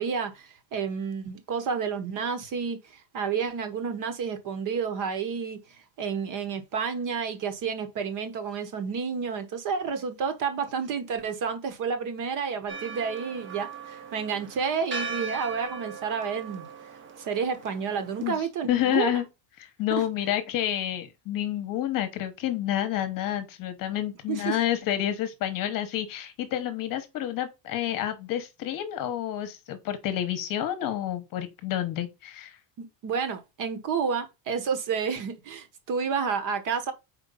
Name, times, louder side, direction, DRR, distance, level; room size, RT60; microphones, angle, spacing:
voice 1, 0.0-5.6 6.0-16.6 17.2-19.2 19.9-20.0 24.3-24.6 32.8-36.9, right 6 dB, 40° right, 1.1 m, -30 dB
Church bell, 12.7-18.4, right 4 dB, 25° right, 0.7 m, -39 dB
voice 2, 18.7-19.3 19.6-32.6, left 11 dB, 40° left, 1.0 m, -29 dB
4.5 x 4.5 x 5.4 m
cardioid pair, 170°, 49 cm